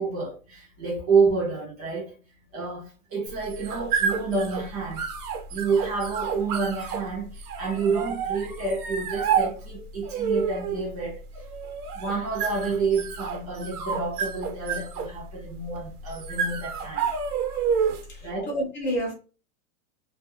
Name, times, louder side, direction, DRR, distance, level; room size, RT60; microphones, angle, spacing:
voice 1, 0.0-2.1 2.5-5.0 5.5-11.3 11.9-17.1 18.2-18.5, right 4 dB, 25° right, 0.5 m, -28 dB
sound 1, 3.3-18.2, right 6 dB, 90° right, 0.8 m, -30 dB
voice 2, 18.1-19.1, equal, 35° left, 0.5 m, -29 dB
2.4 x 2.2 x 3.2 m
supercardioid pair, 175°, 44 cm